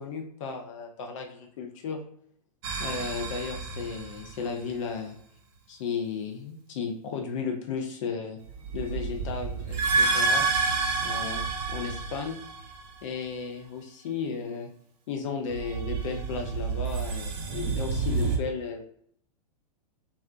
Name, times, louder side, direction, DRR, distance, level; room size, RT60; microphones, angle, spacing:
voice 1, 0.0-2.0 2.8-5.1 5.7-8.4 8.7-10.5 11.0-12.4 13.0-14.7 15.1-18.8, left 5 dB, 50° left, 3 dB, 0.5 m, -34 dB
sound 1, 2.6-4.6 8.5-13.0 15.5-18.4, right 4 dB, 40° right, 0.5 m, -29 dB
2.4 x 2.1 x 2.4 m, 0.64 s
figure-of-eight pair, 105°, 21 cm